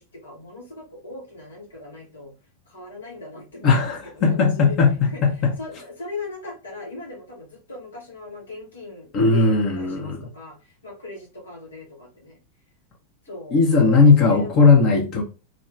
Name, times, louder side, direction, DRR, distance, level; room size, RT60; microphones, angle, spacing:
voice 1, 0.0-2.3 2.7-12.4 13.2-14.7, left 2 dB, 70° left, 1.0 m, -39 dB
voice 2, 3.6-5.5 9.1-10.3 13.5-15.2, left 4 dB, 35° left, 0.7 m, -17 dB
2.5 x 2.2 x 3.2 m
figure-of-eight pair, 90°, 0 cm